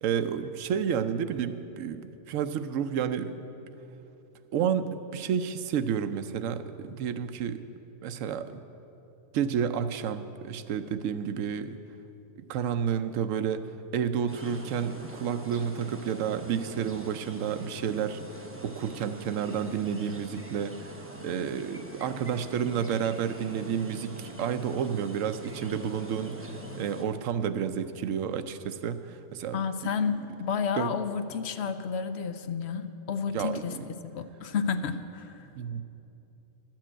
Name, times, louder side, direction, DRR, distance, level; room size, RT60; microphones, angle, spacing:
voice 1, 0.0-3.3 4.5-7.6 8.0-8.6 9.3-11.8 12.4-13.7 13.9-18.2 18.6-20.9 21.2-29.6 30.7-30.9 33.3-33.8 35.6-35.8, right 8 dB, 90° right, 11 dB, 1.0 m, -30 dB
sound 1, 14.3-27.0, right 1 dB, 10° right, 0.8 m, -44 dB
voice 2, 29.5-33.8 34.0-35.4, left 6 dB, 65° left, 10 dB, 0.8 m, -31 dB
12.5 x 7.5 x 8.8 m, 3.0 s
omnidirectional pair, 1.3 m